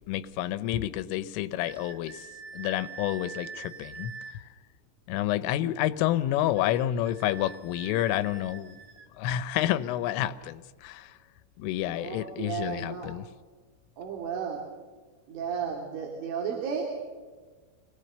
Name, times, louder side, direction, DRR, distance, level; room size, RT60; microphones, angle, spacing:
voice 1, 0.1-2.3 2.5-4.1 5.1-8.8 9.2-11.2 11.6-13.3, left 13 dB, 85° left, 14 dB, 3.4 m, -29 dB
sound 1, 1.7-4.4 6.6-9.1, right 6 dB, 55° right, 3.9 m, -45 dB
voice 2, 11.9-13.1 14.0-14.6 15.3-17.0, right 6 dB, 75° right, 0 dB, 5.4 m, -33 dB
28.5 x 20.0 x 6.8 m, 1.4 s
omnidirectional pair, 5.7 m